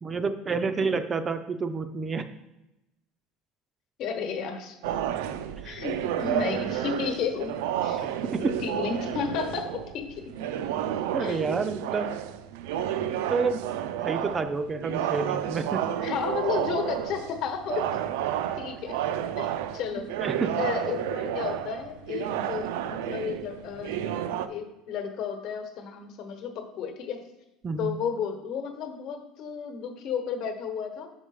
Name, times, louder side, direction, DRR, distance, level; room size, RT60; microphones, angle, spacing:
voice 1, 0.0-2.3 5.6-5.8 8.2-8.5 11.1-12.1 13.3-13.6 14.0-15.9 20.0-20.6 27.6-27.9, right 4 dB, 20° right, 10 dB, 0.4 m, -29 dB
voice 2, 4.0-4.8 5.6-7.5 7.8-8.1 8.6-10.2 11.2-11.4 16.0-17.9 18.6-19.0 19.4-20.1 20.5-24.1 24.5-27.2 27.8-31.1, left 6 dB, 50° left, 6 dB, 1.1 m, -32 dB
sound 1, 4.8-24.5, right 10 dB, 85° right, 0.4 m, -31 dB
6.0 x 5.5 x 4.8 m, 0.95 s
cardioid pair, 145°, 0 cm